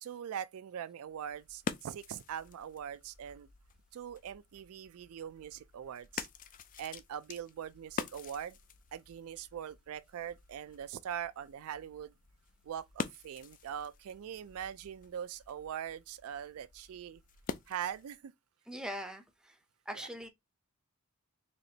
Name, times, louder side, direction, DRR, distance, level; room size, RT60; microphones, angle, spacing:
voice 1, 0.0-3.5 3.9-6.3 6.8-8.6 8.9-12.1 12.7-17.2 17.7-18.3, right 9 dB, 70° right, 0.3 m, -42 dB
sound 1, 1.1-18.2, left 5 dB, 40° left, 0.4 m, -47 dB
voice 2, 18.7-19.6 19.9-20.3, equal, 5° right, 0.6 m, -41 dB
4.2 x 3.0 x 2.8 m
head